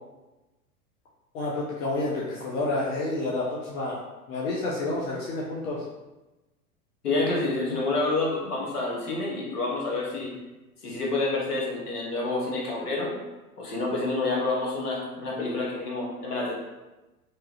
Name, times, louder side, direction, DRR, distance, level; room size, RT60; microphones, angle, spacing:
voice 1, 1.3-4.0 4.3-5.8, left 2 dB, 65° left, -4 dB, 0.7 m, -29 dB
voice 2, 7.0-10.3 10.8-13.1 13.6-16.5, left 2 dB, 80° left, -3 dB, 1.0 m, -28 dB
3.0 x 2.3 x 2.8 m, 1.1 s
figure-of-eight pair, 90°, 45 cm